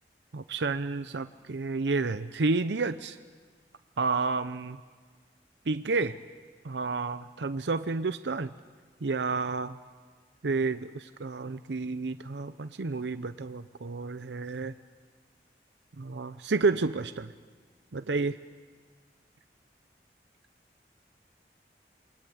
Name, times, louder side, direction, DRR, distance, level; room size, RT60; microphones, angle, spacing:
voice 1, 0.3-3.2 4.0-4.8 5.7-6.2 6.6-8.5 9.0-9.8 10.4-14.7 16.0-17.3 17.9-18.4, right 3 dB, 85° right, 11 dB, 0.7 m, -30 dB
28.0 x 22.0 x 8.6 m, 1.5 s
head